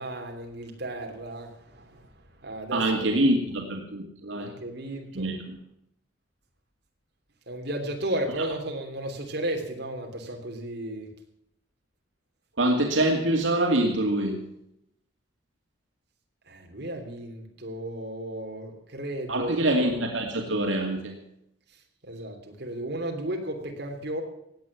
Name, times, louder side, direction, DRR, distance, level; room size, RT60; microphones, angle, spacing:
voice 1, 0.0-2.1 2.4-3.0 4.4-5.3 7.5-11.1 16.5-19.7 22.0-24.2, right 1 dB, 60° right, 3 dB, 3.0 m, -34 dB
voice 2, 2.7-4.5 5.1-5.6 12.6-14.4 19.3-21.2, right 1 dB, 80° right, 1 dB, 2.4 m, -25 dB
16.5 x 9.4 x 7.2 m, 0.78 s
head